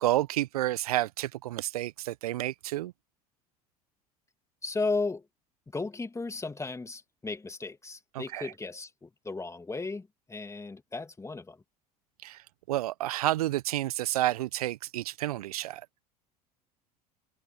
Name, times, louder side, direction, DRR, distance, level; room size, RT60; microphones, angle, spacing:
voice 1, 0.0-2.9 8.1-8.5 12.2-15.9, right 15 dB, 70° right, 0.8 m, -30 dB
voice 2, 4.6-5.3 5.7-11.6, left 3 dB, 15° left, 2.6 m, -35 dB
figure-of-eight pair, 65°, 20 cm